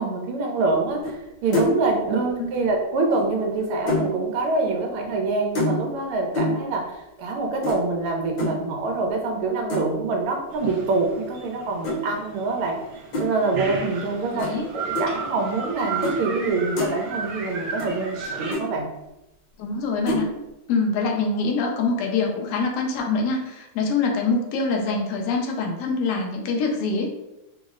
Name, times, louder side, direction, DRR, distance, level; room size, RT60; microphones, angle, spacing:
voice 1, 0.0-12.8 13.2-18.9, right 3 dB, 85° right, 2 dB, 1.6 m, -25 dB
sound 1, 1.0-1.3 1.5-1.9 3.1-4.1 5.5-6.0 6.3-6.7 7.6-7.8 8.4-8.6 9.7-10.0 11.8-12.0 13.1-13.3 14.4-14.5 14.9-15.1 16.0-16.2 16.5-16.9 17.8-17.9 18.2-18.3 18.5-18.6 20.1-20.3, left 1 dB, 60° left, 1.3 m, -26 dB
sound 2, 10.5-18.5, right 5 dB, 70° right, 1.3 m, -34 dB
voice 2, 14.3-14.7 19.6-20.3 20.7-27.1, left 4 dB, 85° left, 1 dB, 0.9 m, -24 dB
3.8 x 2.0 x 3.6 m, 0.94 s
omnidirectional pair, 2.4 m